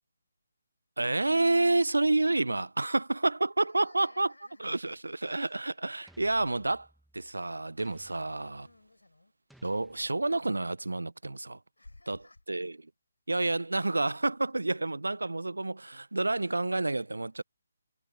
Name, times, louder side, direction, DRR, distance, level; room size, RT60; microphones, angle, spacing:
voice 1, 1.0-4.3 4.6-6.9 7.1-8.7 9.6-11.6 12.1-12.2 12.5-12.7 13.3-17.4, right 2 dB, 85° right, 0.7 m, -29 dB
voice 2, 3.6-4.8 8.0-9.3 11.8-12.4 16.5-16.7, left 2 dB, 90° left, 7.3 m, -57 dB
sound 1, 5.3-5.7 6.1-7.4 7.8-8.9 9.5-10.6, right 1 dB, ahead, 2.0 m, -62 dB
figure-of-eight pair, 145°, 0 cm